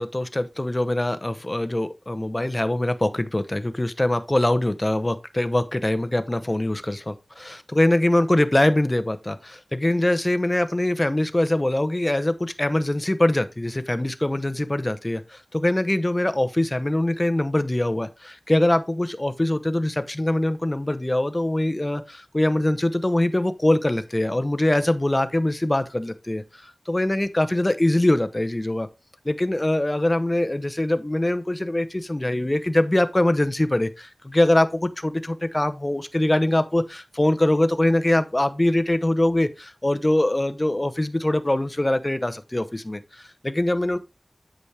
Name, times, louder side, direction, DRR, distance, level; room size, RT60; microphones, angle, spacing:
voice 1, 0.0-28.9 29.2-44.0, left 1 dB, 25° left, 0.8 m, -23 dB
8.3 x 6.2 x 3.3 m
wide cardioid pair, 60°, 0 cm